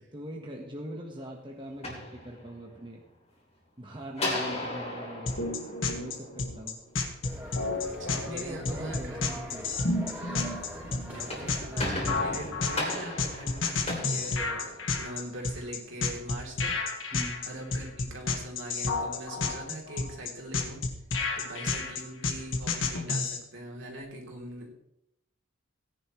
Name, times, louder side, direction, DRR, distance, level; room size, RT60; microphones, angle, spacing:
voice 1, 0.1-3.0 3.8-5.6 5.9-6.8 8.0-9.7 12.3-12.4 17.1-17.5, right 1 dB, 25° right, 0 dB, 1.3 m, -42 dB
sound 1, 1.6-2.8 4.2-6.6 11.0-15.1, left 1 dB, 30° left, 3.1 m, -36 dB
sound 2, 5.3-23.4, left 3 dB, 75° left, 1.7 m, -31 dB
sound 3, 7.2-12.5, equal, 10° right, 4.0 m, -42 dB
voice 2, 7.8-9.5 11.1-16.7 17.4-20.8 21.3-24.7, right 1 dB, 65° right, 0 dB, 3.3 m, -42 dB
17.5 x 10.5 x 3.2 m, 0.79 s
head